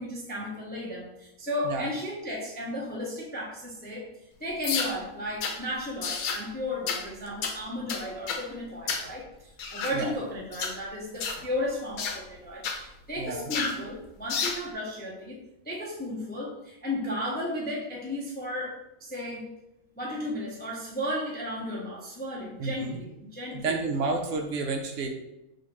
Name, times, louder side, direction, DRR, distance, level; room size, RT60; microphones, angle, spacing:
voice 1, 0.0-4.0 4.4-19.5 19.9-23.8, left 1 dB, 15° left, -4 dB, 0.3 m, -34 dB
sound 1, 4.6-4.9 5.4-5.6 6.0-6.4 6.9-7.0 7.4-7.6 7.9-8.4 8.9-9.1 9.6-10.0 10.5-10.8 11.2-11.4 12.0-12.2 12.6-12.8 13.5-13.8 14.3-14.6, left 5 dB, 80° left, 1.1 m, -30 dB
voice 2, 13.2-13.5 22.6-23.0 23.5-25.1, right 3 dB, 70° right, 4 dB, 0.8 m, -30 dB
6.2 x 2.5 x 3.0 m, 0.90 s
omnidirectional pair, 1.5 m